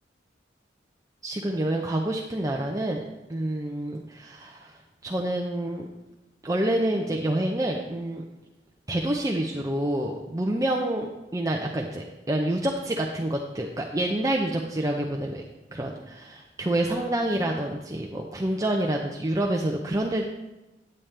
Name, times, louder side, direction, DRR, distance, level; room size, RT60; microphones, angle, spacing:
voice 1, 1.2-3.0 3.3-4.7 5.0-5.9 6.4-8.2 8.9-15.4 15.7-20.3, right 1 dB, 20° right, 0 dB, 0.5 m, -27 dB
8.8 x 8.6 x 3.3 m, 1.0 s
head